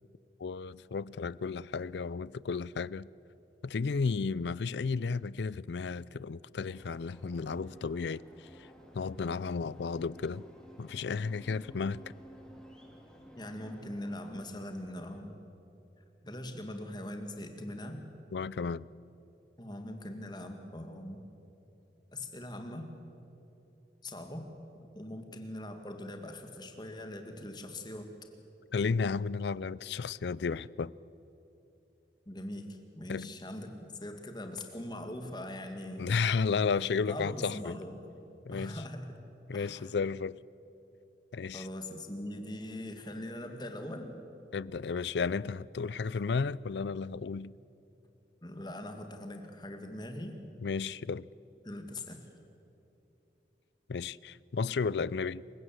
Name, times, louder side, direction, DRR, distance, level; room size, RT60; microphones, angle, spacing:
voice 1, 0.4-3.1 3.6-8.2 8.9-10.4 10.8-12.0 18.3-18.9 28.7-30.9 33.1-33.3 36.0-37.8 38.5-38.8 39.5-40.4 41.3-41.7 44.5-47.5 50.6-51.3 53.9-55.4, left 5 dB, 75° left, 0.4 m, -33 dB
sound 1, 6.7-15.2, equal, 5° left, 2.3 m, -54 dB
voice 2, 13.3-15.4 16.2-18.0 19.6-21.3 22.1-22.9 24.0-24.5 24.9-28.1 32.3-33.7 34.0-36.4 37.1-37.9 38.5-39.2 39.5-39.9 41.5-44.1 48.4-50.4 51.6-52.3, left 1 dB, 25° left, 2.1 m, -41 dB
27.5 x 16.5 x 7.8 m
head